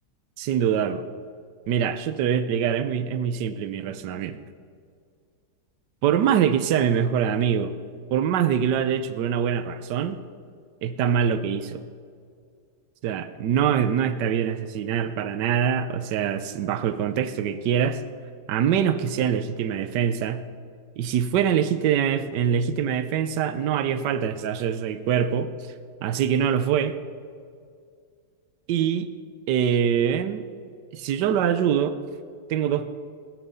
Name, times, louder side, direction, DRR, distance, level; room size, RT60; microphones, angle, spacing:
voice 1, 0.4-1.0 1.7-4.4 6.0-7.7 8.1-10.2 10.8-11.8 13.0-18.0 18.5-20.5 21.0-25.5 26.0-27.0 28.7-29.1 29.5-30.5 30.9-32.0 32.5-32.9, right 8 dB, 70° right, 12 dB, 1.3 m, -24 dB
16.0 x 13.5 x 5.5 m, 2.2 s
omnidirectional pair, 2.1 m